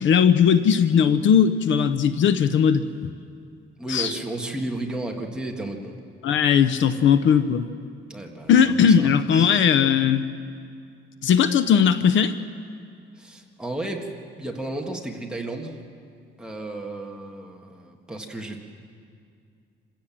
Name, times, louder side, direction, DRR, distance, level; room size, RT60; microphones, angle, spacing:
voice 1, 0.0-2.9 3.9-4.1 6.2-7.7 8.5-10.3 11.2-12.4, left 7 dB, 65° left, 12 dB, 0.8 m, -18 dB
voice 2, 3.8-5.9 8.1-9.5 13.2-14.1 14.3-15.8 16.4-18.6, right 2 dB, 5° right, 0 dB, 1.7 m, -33 dB
26.5 x 16.5 x 7.4 m, 2.3 s
cardioid pair, 165°, 21 cm